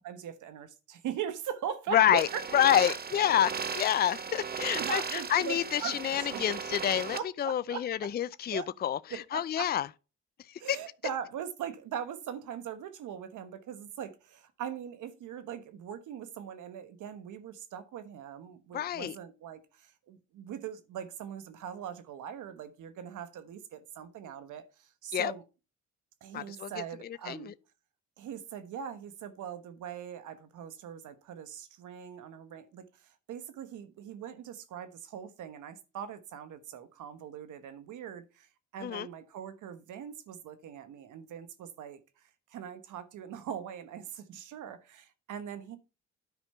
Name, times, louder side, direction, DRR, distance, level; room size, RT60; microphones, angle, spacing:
voice 1, 0.0-2.4 2.9-3.0 4.8-6.4 7.1-8.1 8.5-8.7 9.1-9.7 10.6-25.4 26.2-27.5 28.2-42.0 42.5-45.8, right 8 dB, 80° right, 1.3 m, -41 dB
voice 2, 1.9-2.3 2.5-9.9 10.5-10.8 18.7-19.2 25.1-25.3 26.3-26.7 27.3-27.5 38.8-39.1, left 10 dB, 35° left, 0.4 m, -28 dB
sound 1, 2.1-7.2, right 6 dB, 30° right, 0.9 m, -36 dB
9.7 x 5.2 x 5.6 m
cardioid pair, 90°, 30 cm